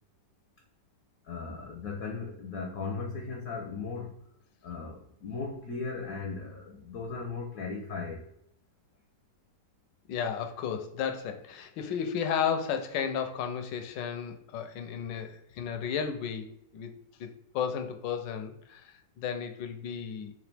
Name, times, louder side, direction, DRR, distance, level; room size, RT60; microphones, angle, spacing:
voice 1, 1.2-4.2 4.6-8.3, left 4 dB, 65° left, 1 dB, 0.9 m, -37 dB
voice 2, 10.1-16.9 17.2-17.3 17.5-20.3, left 7 dB, 85° left, 6 dB, 1.3 m, -33 dB
3.9 x 3.2 x 3.3 m, 0.76 s
omnidirectional pair, 1.9 m